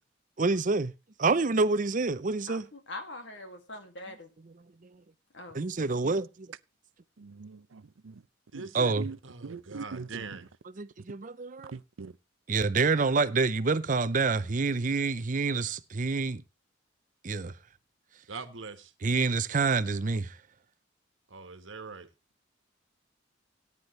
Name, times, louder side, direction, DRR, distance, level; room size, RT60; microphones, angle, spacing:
voice 1, 0.4-0.9 1.2-2.7 5.5-6.5 8.7-9.1 10.8-11.8 12.5-16.4 17.2-17.5 19.0-20.4, right 4 dB, 40° right, 0.6 m, -27 dB
voice 2, 2.5-4.3 5.3-5.7, left 2 dB, 65° left, 2.3 m, -43 dB
voice 3, 7.2-8.1 8.5-8.7 9.0-9.2 9.4-10.2 11.7-12.1, right 4 dB, 90° right, 0.6 m, -41 dB
voice 4, 8.5-8.9 9.2-10.5 18.3-18.9 21.3-22.1, right 4 dB, 75° right, 1.5 m, -42 dB
17.5 x 9.8 x 3.2 m
head